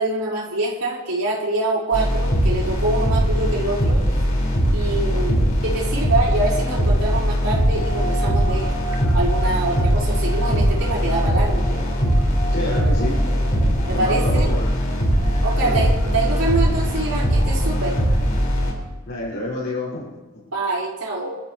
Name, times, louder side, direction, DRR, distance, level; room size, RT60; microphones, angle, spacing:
voice 1, 0.0-4.0 4.7-5.3 5.6-8.7 9.1-11.6 13.9-14.5 15.4-18.0 20.5-21.3, right 2 dB, 85° right, -5 dB, 5.0 m, -25 dB
sound 1, 1.9-18.7, equal, 40° left, 5.3 m, -20 dB
voice 2, 5.1-5.5 12.5-13.2 13.6-14.7 15.6-15.8 19.1-20.0, left 1 dB, 55° left, -6 dB, 6.1 m, -29 dB
30.0 x 13.5 x 3.2 m, 1.3 s
head